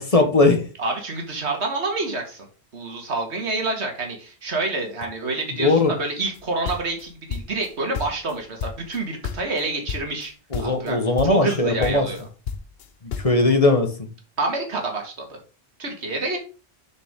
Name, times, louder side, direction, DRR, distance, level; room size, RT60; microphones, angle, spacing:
voice 1, 0.0-0.6 5.6-5.9 10.5-12.1 13.2-13.9, left 2 dB, 35° left, 5 dB, 1.3 m, -19 dB
voice 2, 0.8-2.5 2.7-10.3 10.6-11.0 11.2-12.3 14.4-15.4 15.8-16.4, right 3 dB, 80° right, 2 dB, 2.1 m, -27 dB
sound 1, 6.3-7.7 7.9-9.0 9.2-9.6 9.9-10.3 10.5-10.9 11.2-11.6 11.8-13.4, left 6 dB, 65° left, 1.0 m, -31 dB
7.0 x 6.5 x 3.7 m, 0.35 s
omnidirectional pair, 1.1 m